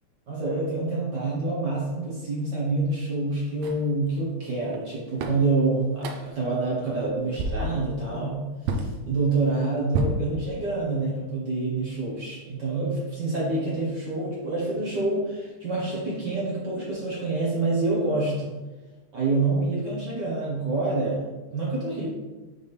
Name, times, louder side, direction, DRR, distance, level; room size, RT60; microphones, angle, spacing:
voice 1, 0.3-18.6 19.1-22.1, right 3 dB, 60° right, -5 dB, 1.1 m, -27 dB
sound 1, 3.6-3.9 4.7-4.8 5.2-5.5 6.0-6.4 6.9-7.1 7.4-7.8 8.7-8.9 9.9-10.9, right 2 dB, 75° right, 1.8 m, -29 dB
7.6 x 4.1 x 3.4 m, 1.2 s
omnidirectional pair, 3.5 m